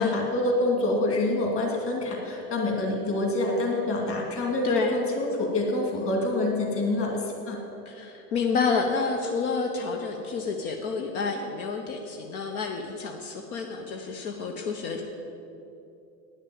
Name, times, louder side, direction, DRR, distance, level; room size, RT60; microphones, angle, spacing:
voice 1, 0.0-7.6, left 2 dB, 30° left, 0 dB, 2.5 m, -26 dB
voice 2, 4.6-5.0 7.8-15.0, left 5 dB, 65° left, 2 dB, 1.3 m, -29 dB
9.8 x 6.6 x 8.8 m, 2.8 s
hypercardioid pair, 125°, 47 cm